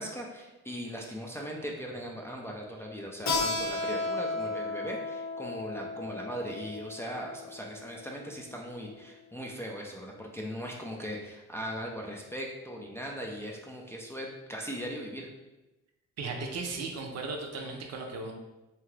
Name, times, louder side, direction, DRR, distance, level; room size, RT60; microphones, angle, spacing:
voice 1, 0.0-15.3, equal, 10° left, -1 dB, 0.3 m, -39 dB
Keyboard (musical), 3.3-8.5, left 3 dB, 60° left, 0.7 m, -34 dB
voice 2, 16.2-18.3, right 3 dB, 60° right, 2 dB, 0.6 m, -36 dB
2.8 x 2.3 x 3.1 m, 1.0 s
cardioid pair, 90°, 30 cm